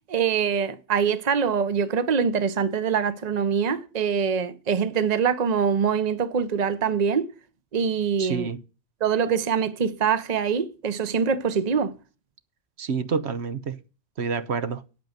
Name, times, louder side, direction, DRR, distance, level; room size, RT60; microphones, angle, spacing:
voice 1, 0.1-7.3 7.7-8.5 9.0-11.9, right 6 dB, 40° right, 0.9 m, -24 dB
voice 2, 8.2-8.6 12.8-13.8 14.2-14.8, right 5 dB, 75° right, 1.1 m, -28 dB
9.1 x 8.0 x 6.6 m
omnidirectional pair, 1.1 m